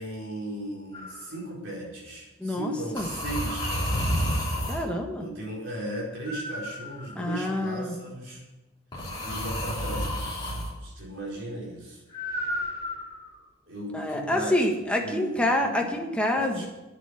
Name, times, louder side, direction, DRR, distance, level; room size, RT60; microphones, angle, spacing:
voice 1, 0.0-4.3 5.2-8.4 9.2-10.3 10.8-12.0 13.7-14.6 15.0-16.1 16.4-16.7, right 1 dB, 60° right, -3 dB, 4.6 m, -37 dB
sound 1, 0.9-1.2 3.0-4.9 6.2-7.4 8.9-10.7 12.1-13.3, equal, 20° left, 3.0 m, -30 dB
voice 2, 2.4-3.1 4.7-5.2 7.1-7.9 13.9-16.7, left 1 dB, 5° left, 1 dB, 1.4 m, -27 dB
9.3 x 7.9 x 8.9 m, 1.0 s
head